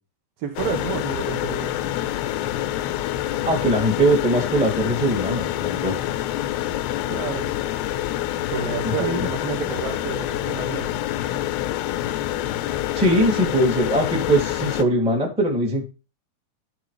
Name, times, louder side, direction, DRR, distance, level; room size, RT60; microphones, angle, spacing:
voice 1, 0.4-1.7 7.1-7.5 8.5-11.0, right 7 dB, 65° right, 2.8 m, -30 dB
sound 1, 0.6-14.8, left 13 dB, 85° left, 2.6 m, -27 dB
voice 2, 3.4-5.9 8.8-9.3 12.9-15.8, right 1 dB, 5° right, 0.7 m, -21 dB
13.0 x 4.6 x 3.2 m
omnidirectional pair, 4.7 m